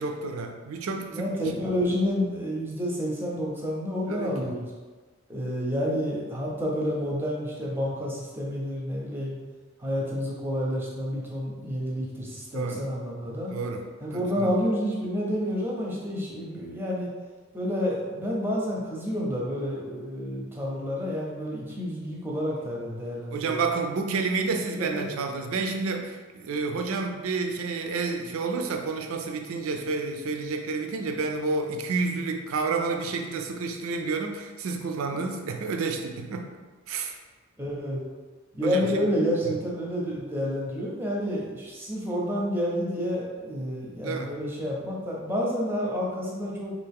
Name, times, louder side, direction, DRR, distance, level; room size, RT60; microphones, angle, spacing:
voice 1, 0.0-1.3 4.1-4.5 12.5-12.9 13.5-13.9 14.1-14.5 23.3-36.5 36.9-37.2 38.6-39.1 39.5-39.6 44.0-44.3, right 4 dB, 70° right, 4 dB, 0.4 m, -30 dB
voice 2, 1.1-4.7 5.3-9.4 9.8-13.5 14.0-17.1 17.5-23.6 24.4-24.5 24.8-25.0 35.1-35.2 37.6-38.0 38.5-46.7, equal, 10° right, -4 dB, 0.6 m, -29 dB
3.4 x 2.5 x 3.4 m, 1.4 s
head